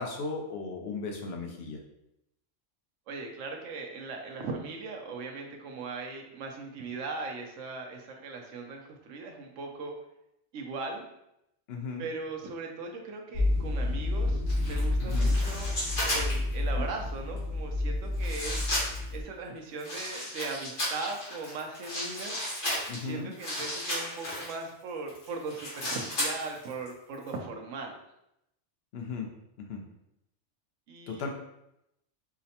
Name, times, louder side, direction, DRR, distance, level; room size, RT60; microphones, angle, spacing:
voice 1, 0.0-1.8 11.7-12.1 15.0-15.4 22.9-23.3 28.9-29.3 29.6-29.8 31.1-31.3, left 4 dB, 65° left, 2 dB, 0.8 m, -36 dB
voice 2, 3.1-9.9 10.5-11.1 12.0-15.7 16.1-18.7 19.1-22.4 22.9-28.0 30.9-31.2, right 3 dB, 85° right, 2 dB, 0.9 m, -39 dB
sound 1, 13.3-19.2, left 2 dB, 45° left, 1.0 m, -29 dB
sound 2, 14.5-16.6 17.4-17.5 18.2-19.1 19.8-24.6 25.1-26.9 27.1-27.3, left 1 dB, 85° left, 1.8 m, -34 dB
4.8 x 2.1 x 2.7 m, 0.83 s
omnidirectional pair, 1.2 m